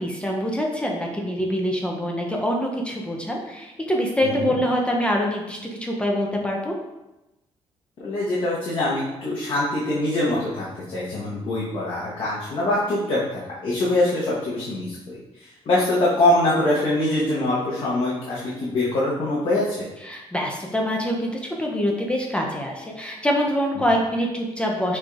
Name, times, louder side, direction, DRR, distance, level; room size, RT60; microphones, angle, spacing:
voice 1, 0.0-6.7 20.0-25.0, equal, 10° left, -1 dB, 0.4 m, -25 dB
voice 2, 4.2-4.5 8.0-19.9, left 1 dB, 50° left, -7 dB, 1.0 m, -24 dB
6.1 x 3.2 x 2.3 m, 0.99 s
cardioid pair, 165°, 12 cm